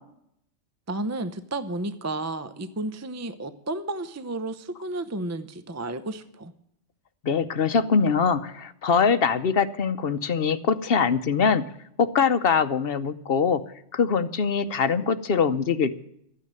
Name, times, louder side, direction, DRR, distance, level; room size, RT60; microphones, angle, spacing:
voice 1, 0.9-6.5, right 2 dB, 15° right, 12 dB, 0.6 m, -32 dB
voice 2, 7.2-11.6 12.0-13.6 13.9-16.0, left 6 dB, 55° left, 12 dB, 0.9 m, -23 dB
13.0 x 9.5 x 8.9 m, 0.74 s
omnidirectional pair, 1.3 m